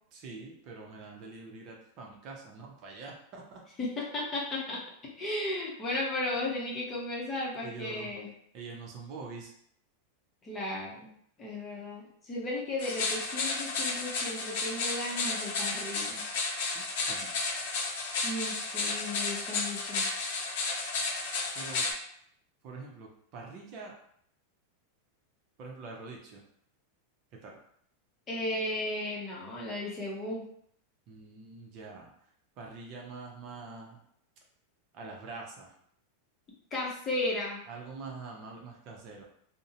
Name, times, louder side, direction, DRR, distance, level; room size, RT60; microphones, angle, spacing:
voice 1, 0.1-3.6 7.6-8.1 8.5-9.5 16.7-17.3 21.5-21.9 22.6-23.9 25.6-26.4 27.3-27.6 31.1-32.1 32.6-34.0 34.9-35.8 37.7-39.3, right 4 dB, 45° right, -1 dB, 0.6 m, -45 dB
voice 2, 3.8-4.8 5.2-8.3 10.4-11.1 11.4-16.2 18.2-20.1 28.3-30.4 36.7-37.6, left 2 dB, 25° left, -3 dB, 0.8 m, -35 dB
sound 1, 12.8-21.9, left 3 dB, 70° left, 0.6 m, -32 dB
2.6 x 2.1 x 2.6 m, 0.67 s
supercardioid pair, 140°, 0 cm